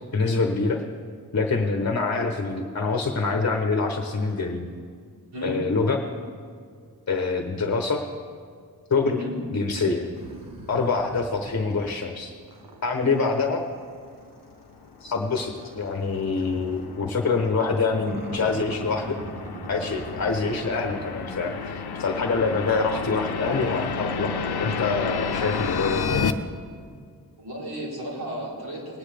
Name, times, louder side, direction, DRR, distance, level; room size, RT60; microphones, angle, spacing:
voice 1, 0.1-0.8 1.3-4.7 5.4-6.0 7.1-8.0 8.9-9.2 9.5-10.1 10.7-12.3 12.8-13.6 15.0-19.1 19.7-26.2, left 4 dB, 45° left, 3 dB, 0.9 m, -25 dB
voice 2, 9.0-9.3 27.4-29.0, right 1 dB, 85° right, -6 dB, 3.7 m, -34 dB
sound 1, 10.1-12.1 12.5-17.0 18.0-21.8 22.3-26.0, right 2 dB, 55° right, 1.2 m, -42 dB
sound 2, 14.8-26.3, left 6 dB, 80° left, 0.6 m, -32 dB
19.5 x 9.7 x 3.4 m, 2.1 s
wide cardioid pair, 120°, 38 cm